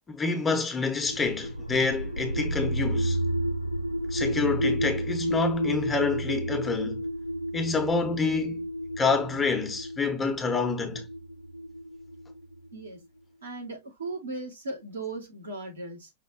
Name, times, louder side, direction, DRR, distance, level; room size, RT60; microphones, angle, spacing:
voice 1, 0.1-3.2 4.1-7.0 7.5-8.7 9.0-11.1, left 4 dB, 20° left, 1.2 m, -27 dB
sound 1, 1.0-12.8, equal, 90° left, 0.6 m, -31 dB
voice 2, 12.7-13.0 13.4-16.1, right 2 dB, 75° right, 2.2 m, -37 dB
5.8 x 3.0 x 2.8 m
figure-of-eight pair, 85°, 0 cm